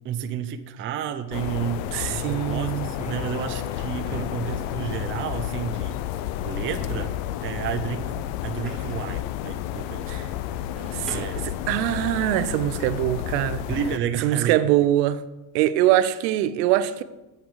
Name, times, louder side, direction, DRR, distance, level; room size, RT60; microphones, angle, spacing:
voice 1, 0.0-6.0 6.4-7.1 7.4-10.2 11.1-11.4 13.7-14.7, right 9 dB, 25° right, 0.6 m, -31 dB
sound 1, 1.2-13.9, left 2 dB, 85° left, 3.8 m, -49 dB
sound 2, 1.3-14.0, left 13 dB, 55° left, 0.6 m, -31 dB
voice 2, 1.9-2.9 10.1-10.3 10.9-13.6 14.2-15.2 15.5-17.0, right 13 dB, 80° right, 0.9 m, -23 dB
sound 3, 3.9-4.7 6.7-7.3 8.7-9.2 10.8-11.6, equal, ahead, 4.7 m, -42 dB
8.7 x 8.1 x 7.0 m
cardioid pair, 150°, 49 cm